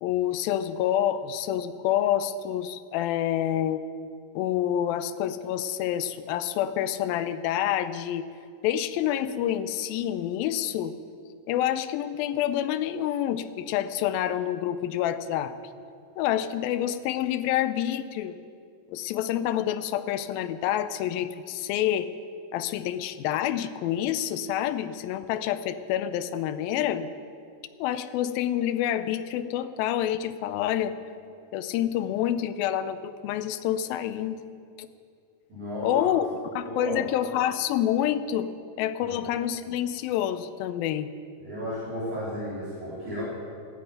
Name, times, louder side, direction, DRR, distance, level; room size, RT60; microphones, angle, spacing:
voice 1, 0.0-3.8 4.4-8.3 8.6-10.9 11.5-15.6 16.2-18.4 18.9-22.1 22.5-27.1 27.8-30.9 31.5-34.4 34.8-34.9 35.8-36.3 36.5-38.5 38.8-41.1, left 11 dB, 85° left, 11 dB, 2.5 m, -27 dB
voice 2, 35.5-36.1 36.6-37.1 39.0-39.2 41.4-43.2, equal, 55° right, -10 dB, 4.6 m, -33 dB
13.5 x 10.5 x 9.2 m, 2.4 s
omnidirectional pair, 4.2 m